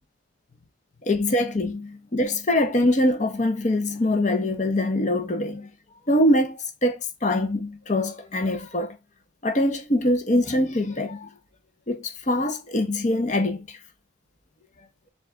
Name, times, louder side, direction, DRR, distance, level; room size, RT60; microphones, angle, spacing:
voice 1, 1.1-5.7 6.1-8.9 9.4-11.3 11.9-13.8, left 1 dB, 40° left, 0.7 m, -23 dB
4.8 x 2.5 x 4.4 m
head